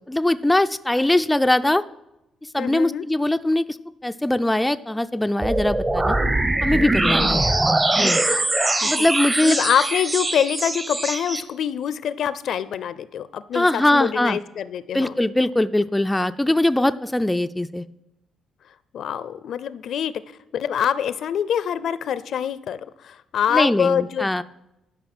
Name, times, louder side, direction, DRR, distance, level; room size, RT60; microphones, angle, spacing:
voice 1, 0.1-1.8 2.5-3.8 4.0-6.2 6.6-7.4 8.0-8.2 8.8-9.6 13.5-14.4 14.9-17.9 23.5-24.4, left 1 dB, 10° left, 10 dB, 0.3 m, -21 dB
voice 2, 2.6-3.0 7.0-7.5 8.8-9.1 9.4-15.2 18.9-20.1 20.5-24.3, left 8 dB, 70° left, 16 dB, 0.5 m, -25 dB
sound 1, 5.4-11.4, right 2 dB, 25° right, 0.8 m, -22 dB
11.0 x 5.3 x 6.0 m, 0.89 s
cardioid pair, 90°, 0 cm